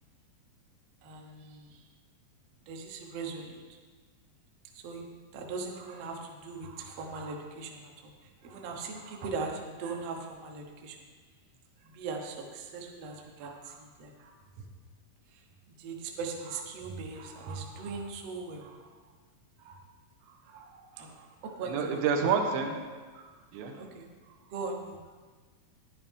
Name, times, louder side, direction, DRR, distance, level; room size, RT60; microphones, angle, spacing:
voice 1, 1.0-1.9 2.7-3.6 4.7-11.0 11.8-14.7 15.3-19.0 19.6-19.8 20.2-22.4 23.1-25.1, right 4 dB, 65° right, 1 dB, 1.6 m, -40 dB
voice 2, 21.6-22.8 23.5-23.8, right 6 dB, 85° right, 3 dB, 2.8 m, -28 dB
11.0 x 10.0 x 3.6 m, 1.5 s
omnidirectional pair, 4.0 m